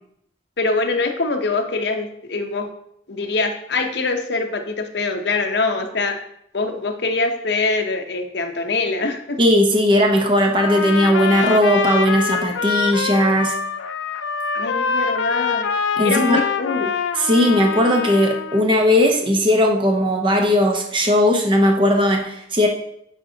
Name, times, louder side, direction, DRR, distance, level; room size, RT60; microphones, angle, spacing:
voice 1, 0.6-2.7 3.1-6.2 6.5-9.4 14.5-15.7 16.0-16.9, left 3 dB, 65° left, 4 dB, 0.8 m, -23 dB
voice 2, 9.4-13.5 16.0-16.4 17.2-22.7, equal, 25° right, 2 dB, 0.8 m, -17 dB
Trumpet, 10.6-18.6, left 6 dB, 85° left, 0.4 m, -24 dB
8.9 x 4.3 x 2.8 m, 0.73 s
head